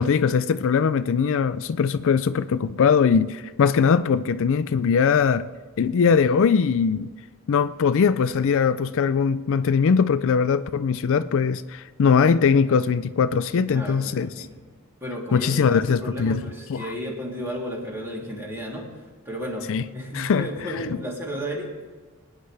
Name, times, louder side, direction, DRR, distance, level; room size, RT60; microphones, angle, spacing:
voice 1, 0.0-5.5 5.8-7.1 7.5-14.5 15.3-16.4 16.7-16.9 19.7-19.8 20.1-20.5 20.8-20.9, left 6 dB, 65° left, 0.4 m, -21 dB
voice 2, 13.7-14.6 15.0-21.9, equal, 10° right, 3.2 m, -33 dB
25.5 x 9.8 x 3.4 m
head